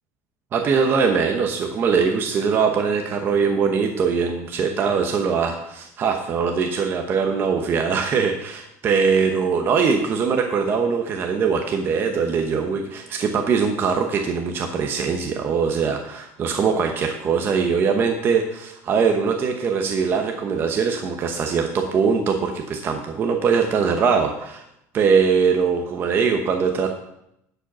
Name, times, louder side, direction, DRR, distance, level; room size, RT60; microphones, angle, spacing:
voice 1, 0.5-24.6 24.9-26.9, right 5 dB, 30° right, 4 dB, 0.9 m, -22 dB
11.0 x 5.1 x 6.1 m, 0.79 s
cardioid pair, 160°, 7 cm